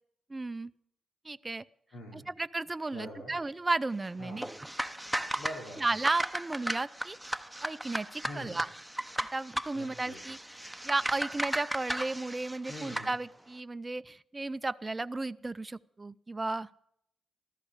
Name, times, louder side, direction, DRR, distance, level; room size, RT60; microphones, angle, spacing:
voice 1, 0.3-0.7 1.2-1.7 2.1-4.5 5.8-8.7 9.3-16.7, right 2 dB, 25° right, 13 dB, 0.5 m, -34 dB
voice 2, 1.9-2.3 2.9-3.4 4.2-4.5 5.4-5.8 8.2-8.6 9.7-10.2 12.7-13.1, equal, 85° left, -1 dB, 3.4 m, -44 dB
sound 1, 4.4-13.1, right 1 dB, 5° right, 0.9 m, -36 dB
14.0 x 14.0 x 4.9 m, 0.71 s
supercardioid pair, 60°, 0 cm